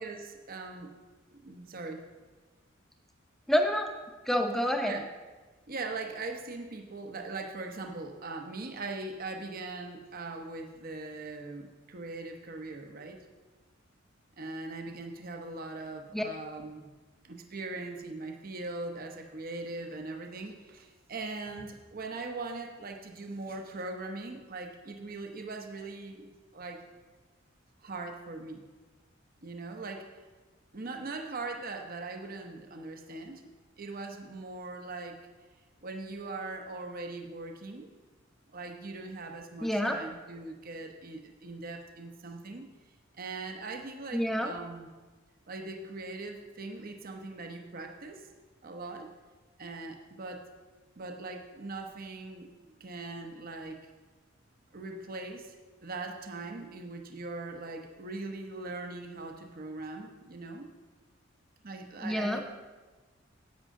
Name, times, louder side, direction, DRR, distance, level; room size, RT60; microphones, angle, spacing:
voice 1, 0.0-0.9 1.3-2.1 4.8-5.1 5.7-13.2 14.4-16.9 17.2-26.8 27.8-28.7 29.4-30.3 30.7-33.4 33.8-35.2 35.8-37.9 38.5-42.7 43.2-44.9 45.5-48.3 48.6-49.1 49.6-50.5 51.0-52.5 52.8-53.8 54.7-55.6 55.8-60.7 61.6-62.4, right 3 dB, 45° right, 4 dB, 0.8 m, -40 dB
voice 2, 3.5-3.9 4.3-5.0 16.1-16.2 39.6-40.0 44.1-44.5 62.0-62.4, equal, ahead, 3 dB, 0.8 m, -28 dB
10.5 x 8.8 x 3.7 m, 1.3 s
head